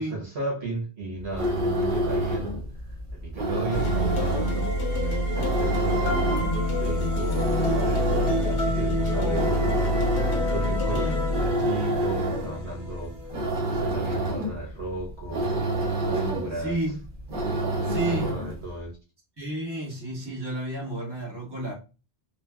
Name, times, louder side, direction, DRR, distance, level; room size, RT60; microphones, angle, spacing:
voice 1, 0.0-2.6 3.1-6.2 6.8-10.0 10.5-15.5 16.0-16.8 17.7-18.9, right 2 dB, 70° right, 1.3 m, -35 dB
sound 1, 1.2-18.7, right 1 dB, 55° right, 1.0 m, -29 dB
sound 2, 3.7-13.8, left 1 dB, 75° left, 1.0 m, -27 dB
voice 2, 9.0-9.7 10.8-11.3 16.5-17.0 17.9-18.3 19.4-21.7, right 1 dB, 20° right, 1.3 m, -32 dB
3.1 x 2.4 x 2.3 m
omnidirectional pair, 1.1 m